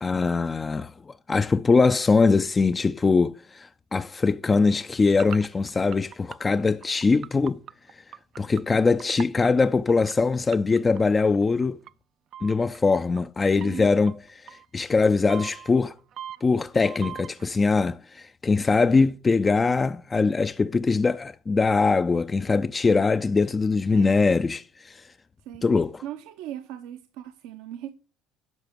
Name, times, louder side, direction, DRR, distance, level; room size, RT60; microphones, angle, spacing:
voice 1, 0.0-7.6 7.9-8.0 8.4-11.8 12.4-15.9 16.4-25.1 25.6-26.0, left 4 dB, 25° left, 0.4 m, -22 dB
sound 1, 5.1-10.1 10.5-11.9 12.3-12.8 13.1-13.2 13.6-14.7 15.3-17.5, right 10 dB, 55° right, 0.4 m, -40 dB
voice 2, 13.6-13.9 23.9-24.2 25.5-25.6 26.0-27.9, right 11 dB, 80° right, 0.7 m, -38 dB
10.5 x 5.6 x 5.2 m
supercardioid pair, 90°, 0 cm